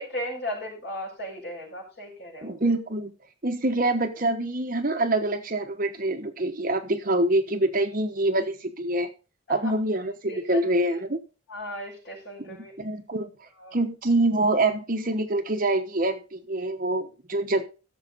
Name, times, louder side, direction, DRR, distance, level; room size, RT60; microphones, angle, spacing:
voice 1, 0.0-2.6 9.6-9.7 10.3-11.0 11.5-12.7 13.6-13.8, left 1 dB, 55° left, -2 dB, 6.1 m, -36 dB
voice 2, 2.4-3.1 3.4-9.1 9.5-11.2 12.4-13.3 13.7-17.6, right 2 dB, 40° right, 7 dB, 1.0 m, -25 dB
15.5 x 7.0 x 4.0 m, 0.33 s
head